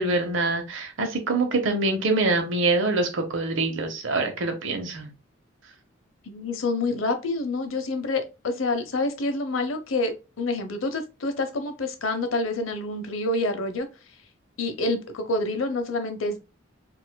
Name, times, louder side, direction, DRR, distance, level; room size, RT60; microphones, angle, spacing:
voice 1, 0.0-5.1, right 2 dB, 70° right, 0.8 m, -25 dB
voice 2, 6.3-13.9 14.6-16.4, left 2 dB, 85° left, 0.7 m, -27 dB
4.3 x 2.4 x 2.2 m
head